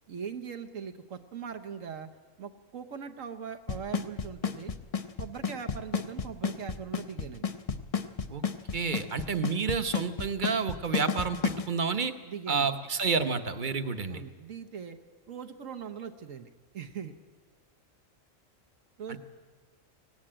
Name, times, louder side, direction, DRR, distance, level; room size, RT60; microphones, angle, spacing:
voice 1, 0.1-2.1 2.4-4.7 5.2-7.5 12.2-12.7 14.1-15.0 15.3-17.1 19.0-19.2, right 7 dB, 75° right, 8 dB, 1.4 m, -40 dB
Drum kit / Snare drum / Bass drum, 3.7-11.6, left 6 dB, 35° left, 0.6 m, -30 dB
voice 2, 8.7-12.1 12.5-14.2 19.1-19.2, right 5 dB, 40° right, 9 dB, 1.0 m, -30 dB
18.5 x 17.0 x 8.8 m, 1.4 s
omnidirectional pair, 1.4 m